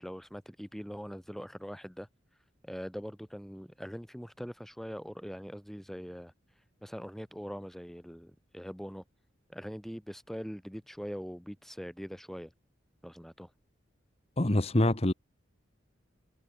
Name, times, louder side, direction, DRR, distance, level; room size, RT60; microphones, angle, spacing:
voice 1, 0.0-2.1 2.6-6.3 6.8-9.0 9.5-12.5 13.0-13.5, equal, ahead, 5.6 m, -42 dB
voice 2, 14.4-15.1, left 1 dB, 30° left, 1.1 m, -25 dB
head